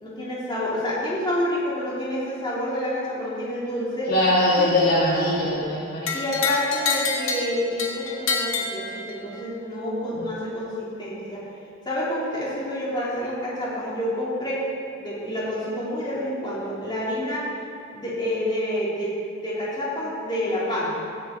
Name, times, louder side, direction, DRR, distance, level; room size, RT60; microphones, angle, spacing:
voice 1, 0.0-4.1 4.6-4.7 6.1-11.4 11.8-14.6 15.0-17.5 17.9-19.1 19.4-20.9, left 1 dB, 25° left, -8 dB, 3.0 m, -28 dB
voice 2, 4.1-6.1 10.1-10.2, left 1 dB, 50° left, -8 dB, 2.4 m, -21 dB
sound 1, 6.1-9.4, left 4 dB, 85° left, 1.3 m, -27 dB
16.5 x 6.7 x 4.4 m, 2.6 s
head